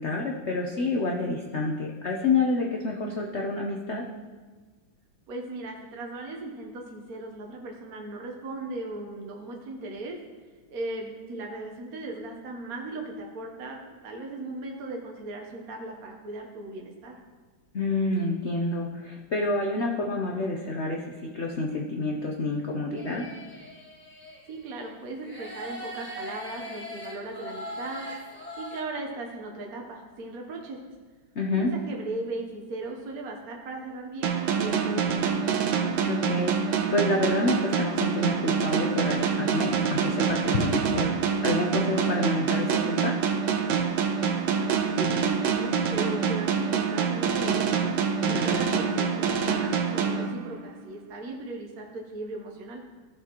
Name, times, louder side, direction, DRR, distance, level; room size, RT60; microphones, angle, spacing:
voice 1, 0.0-4.1 17.7-23.3 31.3-31.7 36.0-41.1 41.4-43.1 48.2-48.7, left 2 dB, 75° left, 0 dB, 0.6 m, -28 dB
voice 2, 5.3-10.2 10.7-17.2 24.5-28.0 28.6-30.8 31.5-35.4 44.5-47.8 48.2-52.8, right 2 dB, 55° right, 0 dB, 1.2 m, -37 dB
sound 1, 22.9-24.9 25.2-28.8, equal, 5° left, 1.0 m, -40 dB
sound 2, 34.2-50.8, right 6 dB, 80° right, 1.5 m, -26 dB
15.0 x 6.5 x 3.0 m, 1.4 s
omnidirectional pair, 2.2 m